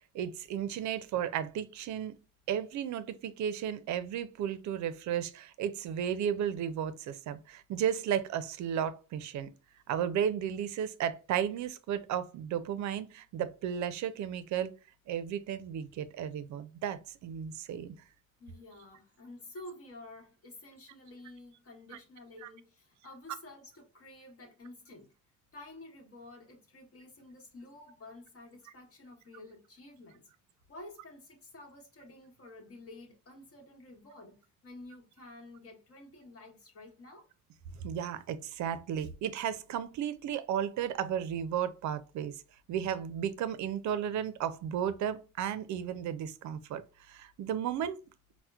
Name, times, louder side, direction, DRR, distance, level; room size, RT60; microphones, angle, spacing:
voice 1, 0.1-2.2 2.5-9.5 9.9-14.7 15.1-17.9 22.4-22.5 37.8-42.4 42.7-48.0, right 9 dB, 70° right, 0.5 m, -34 dB
voice 2, 18.4-25.1 25.5-30.2 30.7-37.3, left 2 dB, 50° left, 1.1 m, -51 dB
4.2 x 2.1 x 2.3 m
cardioid pair, 90°, 30 cm